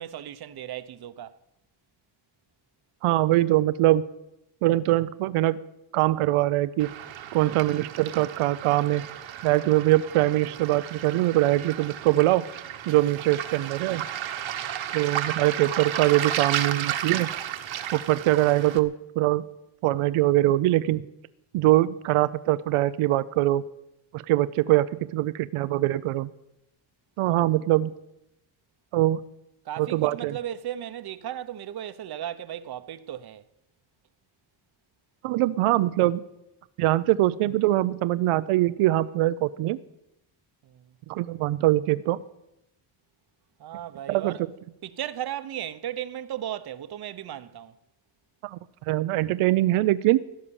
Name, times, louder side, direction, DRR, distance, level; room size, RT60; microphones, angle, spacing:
voice 1, 0.0-1.4 29.6-33.5 40.6-41.0 43.6-44.4 44.8-47.8, right 11 dB, 50° right, 0.9 m, -36 dB
voice 2, 3.0-4.0 4.6-5.6 5.9-6.9 7.3-9.0 9.4-12.4 12.9-14.1 14.9-17.3 17.9-19.4 19.8-21.1 21.5-23.6 24.1-26.3 27.2-27.9 28.9-29.2 29.8-30.4 35.2-36.2 36.8-39.8 41.1-42.2 44.1-44.3 48.4-48.6 48.9-50.2, right 16 dB, 85° right, 0.7 m, -23 dB
Waves surf, 6.8-18.8, right 10 dB, 65° right, 1.4 m, -33 dB
16.5 x 12.5 x 7.1 m
cardioid pair, 140°, 49 cm